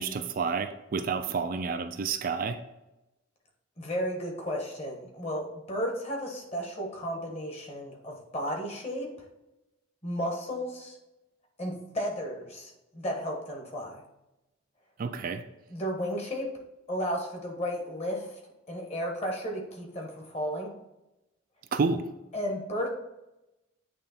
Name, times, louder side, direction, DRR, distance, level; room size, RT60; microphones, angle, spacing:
voice 1, 0.0-2.6 15.0-15.4 21.7-22.0, right 5 dB, 45° right, 8 dB, 0.4 m, -29 dB
voice 2, 3.8-9.1 10.0-11.0 11.6-14.0 15.7-16.5 16.9-18.4 18.7-20.7 22.3-22.9, equal, 30° left, 0 dB, 1.4 m, -33 dB
8.6 x 3.2 x 4.3 m, 0.96 s
head